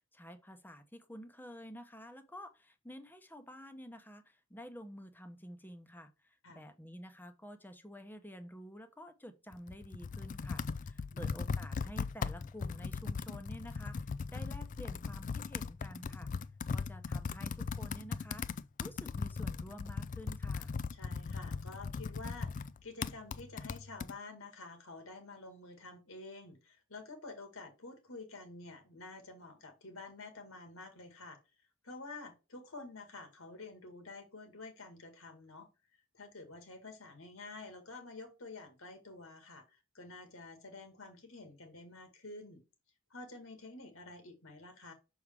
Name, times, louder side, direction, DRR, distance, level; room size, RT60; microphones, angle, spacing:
voice 1, 0.1-16.3 16.7-18.4 18.8-20.7, equal, 10° left, 0.7 m, -50 dB
Computer keyboard, 9.5-24.1, left 5 dB, 40° left, 0.3 m, -39 dB
voice 2, 20.9-31.4 31.8-35.7 36.1-42.6 43.1-44.9, left 3 dB, 80° left, 2.0 m, -49 dB
6.3 x 4.7 x 3.5 m
head